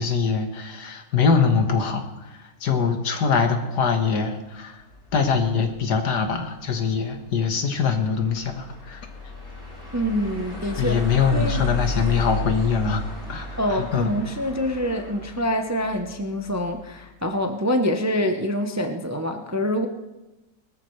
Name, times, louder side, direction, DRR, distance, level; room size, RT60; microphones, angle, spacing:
voice 1, 0.0-4.8 5.1-9.1 10.8-14.1, left 6 dB, 90° left, 6 dB, 1.9 m, -23 dB
sound 1, 4.8-17.0, left 1 dB, 60° left, 4.7 m, -35 dB
voice 2, 9.9-11.0 11.3-11.6 13.6-19.9, equal, 20° right, 5 dB, 0.5 m, -25 dB
19.5 x 13.0 x 3.2 m, 1.0 s
omnidirectional pair, 1.7 m